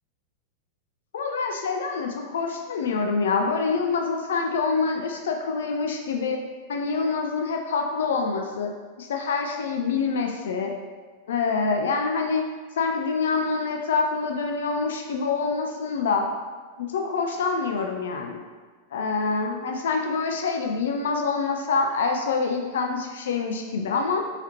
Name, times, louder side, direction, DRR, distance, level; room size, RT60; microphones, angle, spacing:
voice 1, 1.1-6.4 6.7-8.7 9.0-10.7 11.3-12.4 12.8-16.2 16.8-18.4 18.9-24.2, left 4 dB, 60° left, 3 dB, 0.4 m, -26 dB
4.0 x 4.0 x 2.9 m, 1.5 s
figure-of-eight pair, 90°, 0 cm